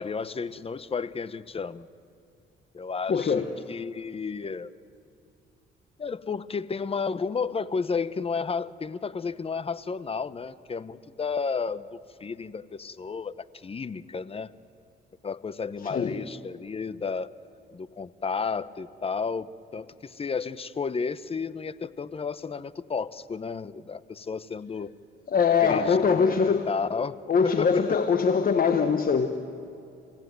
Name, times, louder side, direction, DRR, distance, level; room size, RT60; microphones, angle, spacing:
voice 1, 0.0-1.9 2.7-4.7 6.0-14.5 15.2-17.3 17.7-24.9 25.6-27.2 27.4-28.0, left 5 dB, 30° left, 16 dB, 0.8 m, -32 dB
voice 2, 3.1-3.5 15.8-16.2 25.3-26.7 27.3-29.3, left 6 dB, 45° left, 7 dB, 1.3 m, -22 dB
29.5 x 16.5 x 9.4 m, 2.6 s
cardioid pair, 90°, 20 cm